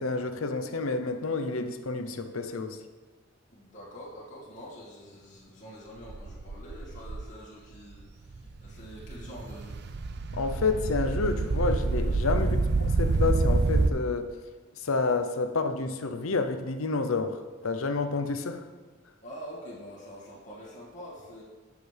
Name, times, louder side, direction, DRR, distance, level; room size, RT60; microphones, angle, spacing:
voice 1, 0.0-2.8 10.3-12.6 13.0-14.3 14.7-18.6, left 3 dB, 85° left, 8 dB, 0.7 m, -29 dB
voice 2, 3.5-9.8 12.4-12.5 19.2-21.4, equal, 40° left, -7 dB, 2.1 m, -45 dB
sound 1, 6.1-7.2 7.9-8.0 8.3-13.9, right 3 dB, 55° right, 0.5 m, -27 dB
11.5 x 6.7 x 3.4 m, 1.4 s
head